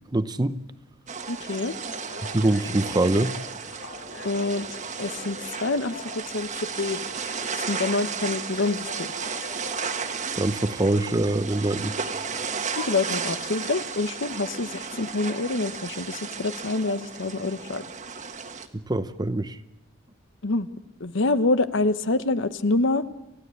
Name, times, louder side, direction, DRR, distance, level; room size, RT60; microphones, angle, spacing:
voice 1, 0.1-0.6 2.3-3.4 10.3-11.9 18.7-19.6, right 1 dB, 20° right, 13 dB, 0.7 m, -24 dB
sound 1, 1.1-18.7, right 5 dB, 40° right, 1.5 m, -34 dB
voice 2, 1.3-1.7 4.2-4.7 5.0-7.0 7.5-9.1 12.8-17.8 20.4-20.7 21.0-23.0, left 3 dB, 65° left, 13 dB, 0.9 m, -26 dB
Telephone, 1.6-11.2 12.8-12.9, left 3 dB, 90° left, 4.8 m, -44 dB
28.5 x 15.5 x 8.3 m, 0.97 s
head